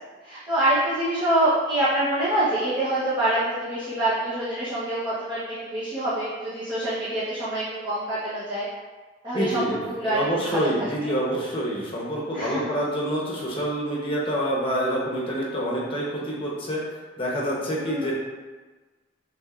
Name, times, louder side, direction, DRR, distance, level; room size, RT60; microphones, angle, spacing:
voice 1, 0.2-8.7 9.2-11.1 12.3-12.7 17.8-18.1, right 1 dB, 25° right, -13 dB, 1.1 m, -26 dB
voice 2, 9.3-16.8 17.2-18.1, equal, 30° left, -4 dB, 1.0 m, -27 dB
6.1 x 3.4 x 2.5 m, 1.3 s
head